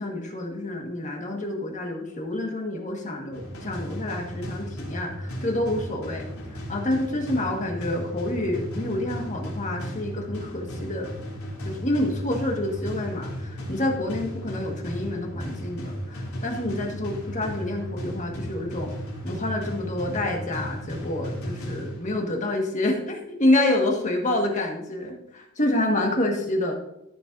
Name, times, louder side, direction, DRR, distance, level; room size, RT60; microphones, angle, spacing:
voice 1, 0.0-6.3 6.5-11.1 11.6-18.9 19.2-26.7, left 1 dB, 35° left, 2 dB, 1.6 m, -28 dB
sound 1, 3.3-22.3, equal, 90° left, 3.3 m, -35 dB
13.5 x 7.2 x 2.6 m, 0.87 s
head